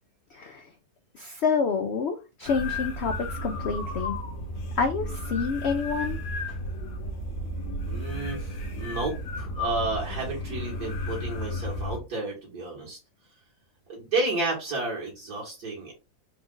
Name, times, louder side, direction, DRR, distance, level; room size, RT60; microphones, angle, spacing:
voice 1, 0.3-0.7 1.1-4.2 4.8-6.2, left 5 dB, 75° left, 6 dB, 0.6 m, -28 dB
sound 1, 2.5-12.0, left 1 dB, 50° left, 1.2 m, -33 dB
voice 2, 7.9-13.0 13.9-15.9, right 2 dB, 65° right, -3 dB, 2.1 m, -31 dB
4.6 x 2.4 x 3.7 m, 0.28 s
omnidirectional pair, 1.8 m